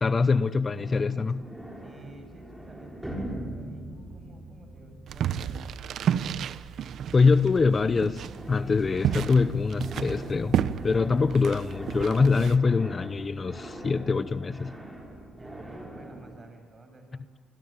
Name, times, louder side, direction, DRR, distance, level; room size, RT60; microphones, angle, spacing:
voice 1, 0.0-1.5 7.1-14.8, left 4 dB, 30° left, 14 dB, 0.8 m, -24 dB
sound 1, 0.8-7.7 8.0-16.4, right 1 dB, 5° right, 7.3 m, -42 dB
voice 2, 1.8-5.8 15.3-17.3, right 2 dB, 30° right, 6 dB, 7.4 m, -51 dB
sound 2, 5.1-12.6, right 9 dB, 65° right, 0.9 m, -31 dB
27.5 x 22.5 x 9.0 m, 1.4 s
cardioid pair, 90°, 0 cm